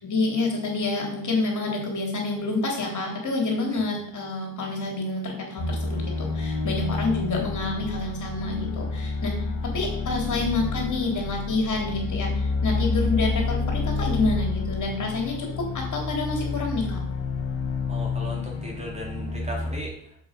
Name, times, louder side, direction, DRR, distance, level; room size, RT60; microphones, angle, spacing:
voice 1, 0.0-9.4 9.6-17.0, left 3 dB, 35° left, 0 dB, 4.0 m, -28 dB
sound 1, 5.6-19.8, left 4 dB, 55° left, 1.8 m, -29 dB
voice 2, 17.9-20.2, equal, 15° right, -1 dB, 3.4 m, -37 dB
7.8 x 7.7 x 5.5 m, 0.64 s
supercardioid pair, 85°, 48 cm